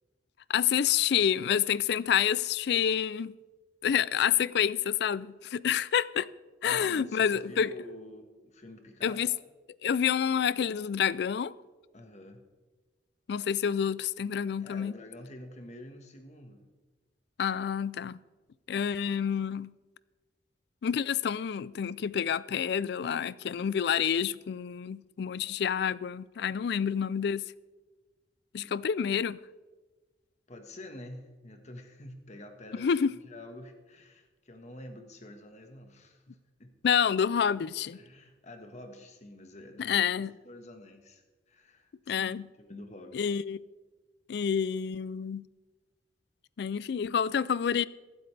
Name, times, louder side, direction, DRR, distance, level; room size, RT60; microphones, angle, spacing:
voice 1, 0.5-3.3 3.8-6.3 6.6-7.7 9.0-9.3 9.8-11.5 13.3-14.9 17.4-18.2 18.7-19.7 20.8-27.5 28.5-29.4 32.8-33.1 36.8-38.0 39.8-40.3 42.1-42.5 43.1-43.6 44.3-45.4 46.6-47.8, left 8 dB, 65° left, 0.4 m, -28 dB
voice 2, 6.6-9.2 11.9-12.4 14.6-16.6 28.6-28.8 30.5-32.9 33.2-36.7 37.9-42.3 42.6-43.4, left 1 dB, 40° left, 1.4 m, -48 dB
23.5 x 8.0 x 3.3 m
head